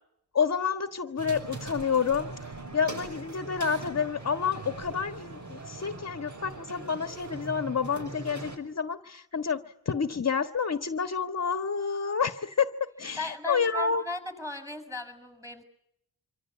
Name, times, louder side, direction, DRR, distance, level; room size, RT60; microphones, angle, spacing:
voice 1, 0.3-14.0, left 6 dB, 40° left, 9 dB, 1.5 m, -29 dB
sound 1, 1.2-8.6, right 3 dB, 45° right, 5.6 m, -41 dB
voice 2, 13.2-15.6, left 2 dB, 10° right, 13 dB, 6.8 m, -37 dB
26.0 x 25.5 x 8.6 m, 0.75 s
wide cardioid pair, 105°, 39 cm